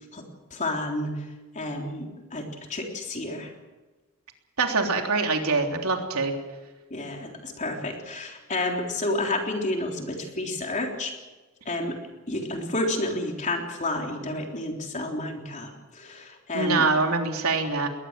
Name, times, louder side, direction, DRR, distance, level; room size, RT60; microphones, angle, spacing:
voice 1, 0.5-3.5 6.9-11.1 11.7-12.0 12.3-16.9, left 2 dB, 35° left, 2 dB, 3.6 m, -30 dB
voice 2, 4.6-6.3 16.5-17.9, right 4 dB, 85° right, 3 dB, 3.4 m, -24 dB
21.0 x 19.0 x 7.5 m, 1.2 s
head